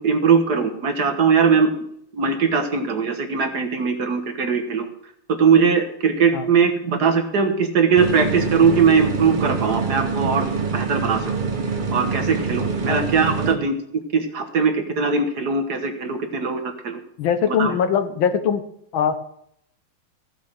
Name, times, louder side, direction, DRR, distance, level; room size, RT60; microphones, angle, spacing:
voice 1, 0.0-1.7 2.1-4.9 5.3-10.5 10.7-11.2 11.9-13.8 14.1-17.0 17.6-17.7, right 5 dB, 55° right, 7 dB, 1.8 m, -20 dB
sound 1, 8.0-13.5, right 5 dB, 35° right, 0.8 m, -25 dB
voice 2, 17.2-18.6 18.9-19.2, left 7 dB, 75° left, 10 dB, 1.7 m, -21 dB
14.5 x 7.5 x 6.5 m, 0.71 s
omnidirectional pair, 2.3 m